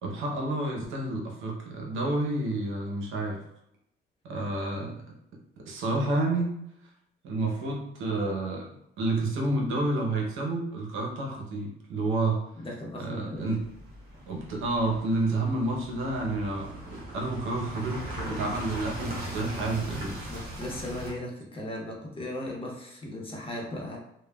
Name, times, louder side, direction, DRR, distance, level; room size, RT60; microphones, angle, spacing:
voice 1, 0.0-3.4 4.2-5.0 5.7-6.5 7.2-8.6 9.0-12.4 13.0-13.6 14.3-18.0 18.3-20.1, right 2 dB, 85° right, -1 dB, 0.8 m, -29 dB
voice 2, 12.6-13.5 18.1-18.3 20.3-24.0, left 1 dB, 25° left, -2 dB, 0.9 m, -37 dB
sound 1, 13.3-21.1, right 1 dB, 50° right, 1.1 m, -39 dB
3.1 x 2.2 x 2.3 m, 0.79 s
cardioid pair, 90°, 20 cm